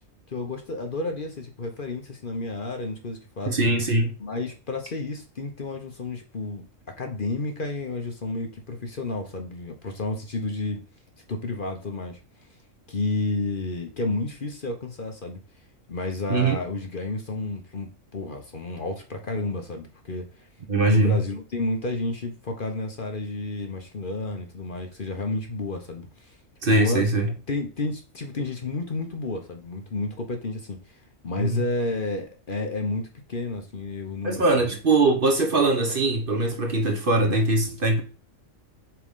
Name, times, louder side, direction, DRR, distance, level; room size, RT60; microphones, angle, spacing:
voice 1, 0.3-3.6 4.2-6.7 7.0-10.8 11.3-12.2 12.9-15.4 15.9-20.4 20.8-26.4 26.7-27.1 27.5-31.0 31.2-34.7, left 2 dB, 45° left, 1.1 m, -31 dB
voice 2, 3.5-4.2 16.3-16.6 20.7-21.2 26.6-27.3 31.4-31.6 34.2-38.0, right 2 dB, 45° right, 1.1 m, -21 dB
7.4 x 3.8 x 3.7 m
omnidirectional pair, 1.4 m